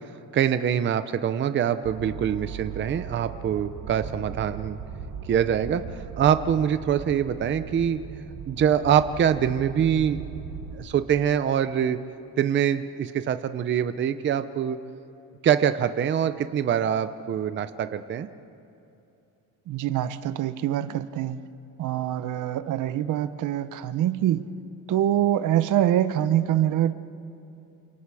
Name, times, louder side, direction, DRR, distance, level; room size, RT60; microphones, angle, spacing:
voice 1, 0.3-4.8 5.3-8.0 8.5-10.2 10.7-12.0 12.4-14.8 15.4-18.3, right 9 dB, 35° right, 11 dB, 0.6 m, -24 dB
sound 1, 1.8-10.8, right 7 dB, 80° right, 3.3 m, -38 dB
voice 2, 19.7-21.4 21.8-24.5 24.9-26.9, right 11 dB, 65° right, 13 dB, 0.9 m, -24 dB
28.5 x 27.0 x 4.8 m, 2.8 s
cardioid pair, 160°, 34 cm